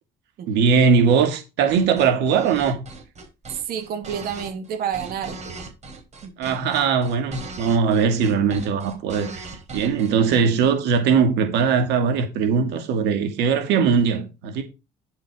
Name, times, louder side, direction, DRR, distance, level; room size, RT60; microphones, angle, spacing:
voice 1, 0.5-2.8 6.4-14.6, right 6 dB, 85° right, 2.0 m, -20 dB
sound 1, 1.7-10.4, right 3 dB, 40° right, 3.9 m, -39 dB
voice 2, 3.5-5.6 6.2-6.8, right 8 dB, 60° right, 1.9 m, -30 dB
10.5 x 5.6 x 4.8 m
cardioid pair, 110°, 17 cm